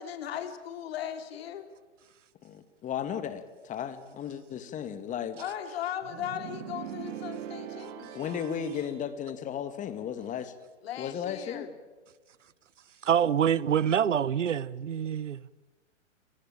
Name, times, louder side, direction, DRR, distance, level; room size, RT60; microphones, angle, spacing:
voice 1, 0.0-1.7 5.4-8.3 10.8-11.7, left 10 dB, 55° left, 3.1 m, -37 dB
voice 2, 2.4-5.4 8.1-10.5 11.0-11.7, left 8 dB, 20° left, 1.9 m, -35 dB
sound 1, 6.0-9.0, right 9 dB, 40° right, 2.8 m, -41 dB
voice 3, 13.0-15.5, right 8 dB, 80° right, 0.9 m, -26 dB
29.5 x 19.0 x 8.9 m
hypercardioid pair, 120°, 36 cm